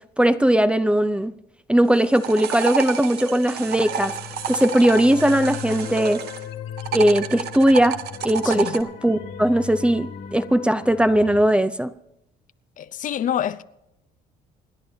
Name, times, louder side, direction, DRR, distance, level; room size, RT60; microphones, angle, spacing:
voice 1, 0.2-1.3 1.7-4.1 4.5-6.2 6.9-8.0 8.2-11.9, right 1 dB, 5° right, 0.6 m, -19 dB
sound 1, 1.9-6.4 6.8-8.8, right 8 dB, 75° right, 1.1 m, -30 dB
sound 2, 3.5-11.4, left 8 dB, 80° left, 2.3 m, -37 dB
voice 2, 8.4-8.8 12.8-13.6, left 10 dB, 50° left, 0.6 m, -27 dB
28.0 x 10.5 x 2.8 m
cardioid pair, 110°, 17 cm